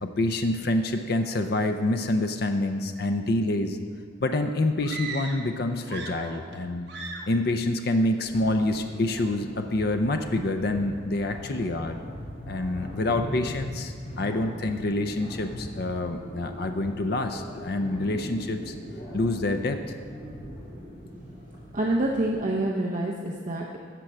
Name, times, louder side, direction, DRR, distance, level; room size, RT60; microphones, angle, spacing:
voice 1, 0.0-3.8 4.2-6.9 7.3-12.0 12.5-18.7 19.1-20.0, left 2 dB, 55° left, 6 dB, 0.6 m, -27 dB
sound 1, 4.8-5.6 5.8-6.6 6.9-7.4, right 4 dB, 65° right, 1.2 m, -38 dB
sound 2, 8.2-22.3, equal, 40° left, 2.9 m, -41 dB
voice 2, 21.7-23.8, right 1 dB, 45° right, -2 dB, 0.8 m, -27 dB
13.0 x 4.5 x 7.3 m, 2.1 s
head